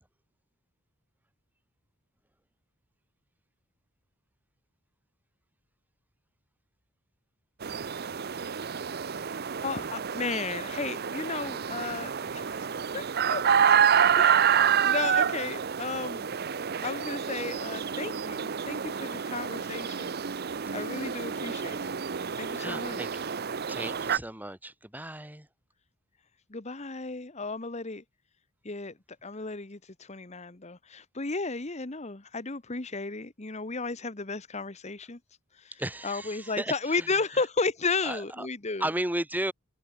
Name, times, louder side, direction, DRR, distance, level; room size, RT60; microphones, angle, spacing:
sound 1, 7.6-24.2, right 7 dB, 50° right, 0.7 m, -28 dB
voice 1, 9.6-13.7 14.1-16.2 16.8-20.2 20.7-21.9 22.4-23.0 26.5-28.0 28.6-35.2 35.5-35.7 36.0-38.9, left 3 dB, 30° left, 1.2 m, -34 dB
voice 2, 20.8-21.1 21.6-21.7 22.4-23.1 23.7-25.5 35.8-37.1 38.0-38.5 38.8-39.5, right 1 dB, 10° right, 2.5 m, -35 dB
head